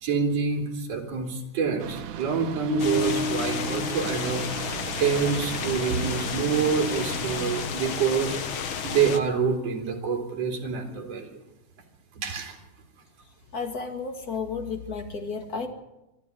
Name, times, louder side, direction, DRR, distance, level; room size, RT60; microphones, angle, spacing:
voice 1, 0.0-4.7 5.0-8.4 8.8-11.3 12.2-12.6, right 6 dB, 60° right, 2 dB, 4.1 m, -27 dB
sound 1, 1.8-7.7, right 10 dB, 75° right, 2.3 m, -38 dB
sound 2, 2.7-4.9, left 1 dB, 75° left, 8.6 m, -31 dB
sound 3, 2.8-9.2, left 7 dB, 55° left, 1.7 m, -32 dB
voice 2, 13.5-15.7, left 5 dB, 35° left, 5 dB, 2.3 m, -32 dB
24.5 x 13.0 x 9.4 m, 0.93 s
omnidirectional pair, 3.4 m